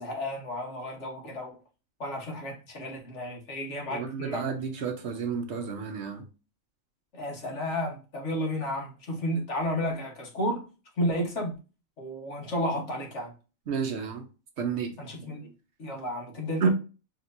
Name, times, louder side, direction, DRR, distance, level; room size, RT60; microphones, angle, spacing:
voice 1, 0.0-1.6 2.0-4.5 7.1-10.7 11.0-11.6 12.0-13.3 15.0-15.5 15.8-16.7, left 1 dB, 60° left, 1.5 m, -32 dB
voice 2, 3.9-6.2 13.7-14.3 14.6-14.9 16.6-16.7, right 6 dB, 60° right, 0.9 m, -30 dB
4.3 x 3.2 x 2.6 m
omnidirectional pair, 1.4 m